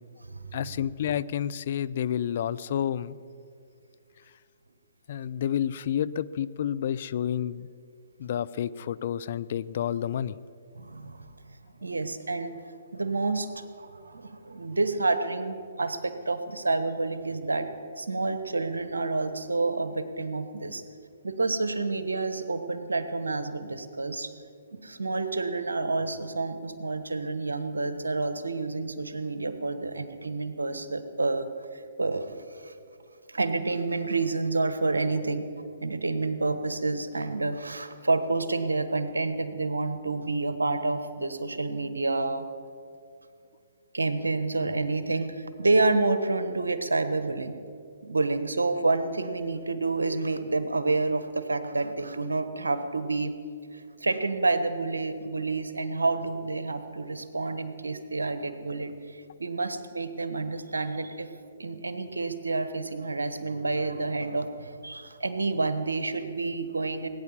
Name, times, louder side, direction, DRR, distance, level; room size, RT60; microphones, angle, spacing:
voice 1, 0.5-3.2 5.1-7.7 8.2-10.4, left 9 dB, 55° left, 18 dB, 0.5 m, -30 dB
voice 2, 10.7-11.3 11.8-12.5 12.9-17.7 18.0-20.8 21.2-24.3 24.7-31.5 31.7-32.7 33.3-42.5 43.9-47.5 48.0-53.3 53.7-61.3 61.6-67.1, right 3 dB, 85° right, 10 dB, 1.2 m, -29 dB
18.0 x 9.5 x 7.3 m, 2.4 s
hypercardioid pair, 130°, 0 cm